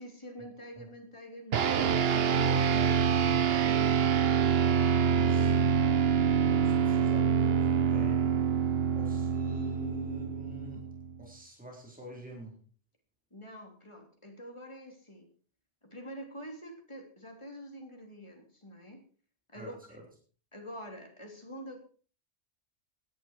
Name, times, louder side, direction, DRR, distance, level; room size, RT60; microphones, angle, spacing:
voice 1, 0.0-1.9 13.3-15.3 15.8-19.0 19.5-20.0 20.5-21.8, equal, 25° left, 3 dB, 3.3 m, -46 dB
sound 1, 1.5-11.2, right 7 dB, 60° right, 1.1 m, -26 dB
voice 2, 1.7-4.0 5.1-5.9 6.4-8.4 8.9-10.9 11.2-12.6 19.5-20.0, left 1 dB, 5° right, -1 dB, 4.2 m, -46 dB
16.5 x 11.0 x 4.7 m, 0.40 s
omnidirectional pair, 1.2 m